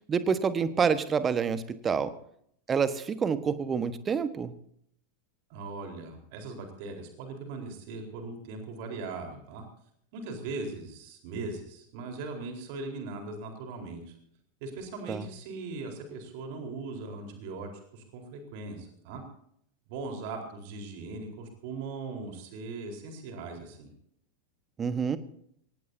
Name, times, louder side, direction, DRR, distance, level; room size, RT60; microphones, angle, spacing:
voice 1, 0.1-2.2 2.7-4.5 15.1-15.3 24.8-25.2, right 6 dB, 20° right, 13 dB, 1.4 m, -27 dB
voice 2, 5.5-9.6 10.1-14.1 14.6-19.2 19.9-23.9, right 3 dB, 50° right, 3 dB, 4.3 m, -39 dB
24.0 x 18.5 x 2.8 m, 0.68 s
figure-of-eight pair, 90°, 0 cm